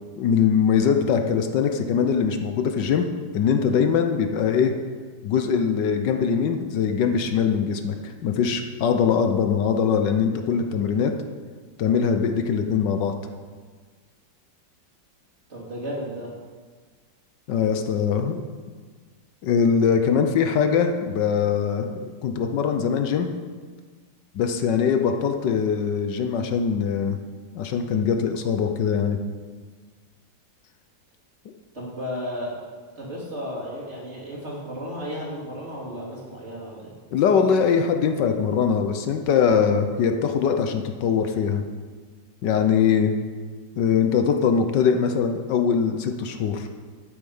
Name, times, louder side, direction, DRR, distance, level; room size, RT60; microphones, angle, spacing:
voice 1, 0.2-3.1 3.3-4.7 5.2-11.1 11.8-13.1 17.5-18.5 19.4-21.9 22.2-23.3 24.3-27.2 27.5-29.2 37.1-41.6 42.4-43.2 43.8-46.7, left 7 dB, 75° left, 6 dB, 1.4 m, -22 dB
voice 2, 15.5-16.3 31.7-32.5 32.9-36.9, equal, 35° right, -6 dB, 3.4 m, -33 dB
11.5 x 8.1 x 5.5 m, 1.5 s
omnidirectional pair, 2.0 m